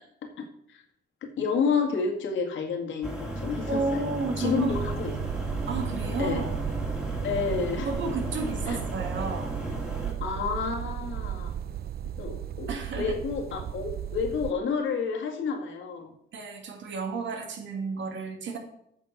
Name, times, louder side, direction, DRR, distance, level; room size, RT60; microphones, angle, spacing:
voice 1, 0.4-0.8 1.2-4.1 4.4-5.1 6.2-6.4 7.2-7.9 8.7-8.8 10.2-11.6 12.2-12.7 13.0-16.1, left 5 dB, 75° left, 3 dB, 2.0 m, -30 dB
sound 1, 3.0-10.1, right 1 dB, 5° right, 2.3 m, -34 dB
voice 2, 3.7-4.8 5.7-6.6 7.8-9.5 12.7-13.1 16.3-18.6, right 4 dB, 70° right, 5 dB, 2.0 m, -32 dB
sound 2, 4.7-14.5, right 10 dB, 50° right, 0.5 m, -35 dB
8.8 x 6.2 x 6.0 m, 0.76 s
cardioid pair, 90°, 20 cm